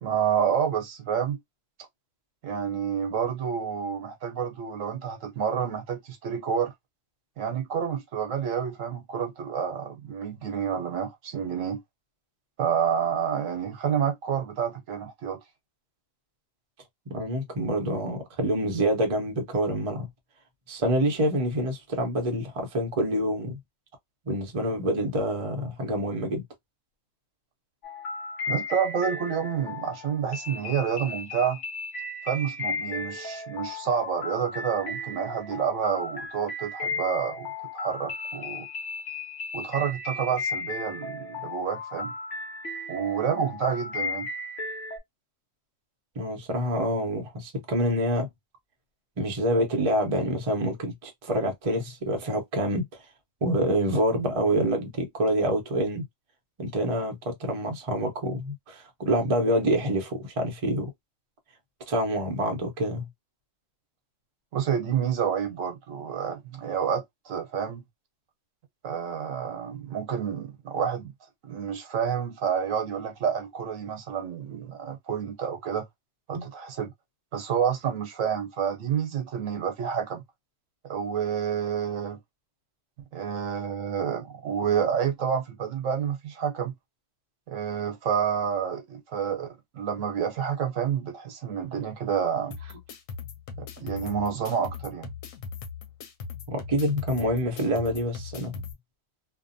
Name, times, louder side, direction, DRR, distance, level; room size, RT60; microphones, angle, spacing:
voice 1, 0.0-1.4 2.4-6.7 7.4-11.8 12.6-15.4 28.5-31.6 32.2-38.7 39.5-42.1 42.9-44.3 64.5-67.8 68.8-71.1 71.4-75.8 76.3-76.9 77.3-80.2 80.8-82.2 83.1-86.7 87.5-92.6 93.6-95.1, right 7 dB, 75° right, 1.2 m, -29 dB
voice 2, 17.1-20.1 20.7-23.6 24.3-26.4 46.2-48.3 49.2-53.0 53.4-56.0 56.6-60.9 61.9-63.1 76.3-76.5 96.5-98.6, right 1 dB, 35° right, 0.7 m, -27 dB
sound 1, 27.8-45.0, left 3 dB, 65° left, 1.1 m, -35 dB
sound 2, 92.5-98.7, left 5 dB, 90° left, 1.1 m, -40 dB
2.7 x 2.2 x 2.5 m
omnidirectional pair, 1.4 m